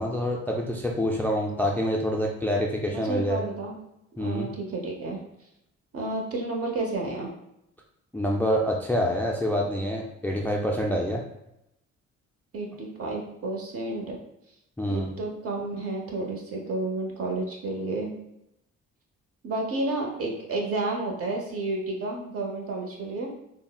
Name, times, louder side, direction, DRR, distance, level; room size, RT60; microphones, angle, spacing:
voice 1, 0.0-3.4 4.2-4.5 8.1-11.2 14.8-15.1, equal, 5° left, -1 dB, 0.3 m, -26 dB
voice 2, 2.9-3.7 4.2-5.2 5.9-7.3 12.5-14.2 14.9-18.1 19.4-23.3, right 2 dB, 50° right, 0 dB, 0.8 m, -31 dB
3.6 x 2.0 x 2.2 m, 0.84 s
cardioid pair, 90°, 30 cm